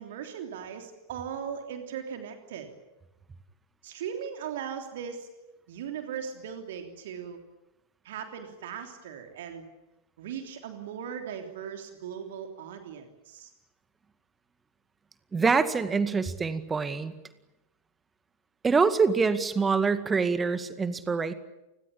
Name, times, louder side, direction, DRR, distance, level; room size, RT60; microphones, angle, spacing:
voice 1, 0.0-2.7 3.8-5.3 5.7-7.4 8.0-9.7 10.2-13.5, right 8 dB, 55° right, 5 dB, 3.2 m, -38 dB
voice 2, 15.3-17.1 18.6-21.3, right 5 dB, 15° right, 12 dB, 2.0 m, -25 dB
30.0 x 20.5 x 8.7 m, 0.96 s
figure-of-eight pair, 90°, 0 cm